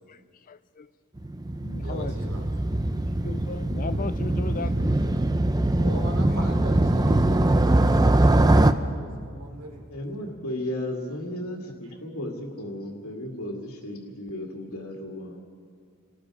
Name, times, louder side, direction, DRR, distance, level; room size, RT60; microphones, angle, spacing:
voice 1, 0.5-0.9 1.6-2.2 3.2-5.2 11.7-11.8 13.2-13.3, left 3 dB, 40° left, 12 dB, 0.5 m, -36 dB
Motorcycle, 1.2-8.7, right 1 dB, 20° right, 0.6 m, -22 dB
voice 2, 1.8-2.7 5.8-8.6 8.9-9.9 10.1-10.3, equal, 70° right, 1 dB, 3.9 m, -40 dB
voice 3, 9.9-15.4, left 1 dB, 80° left, -1 dB, 2.4 m, -34 dB
29.0 x 19.0 x 5.0 m, 2.1 s
head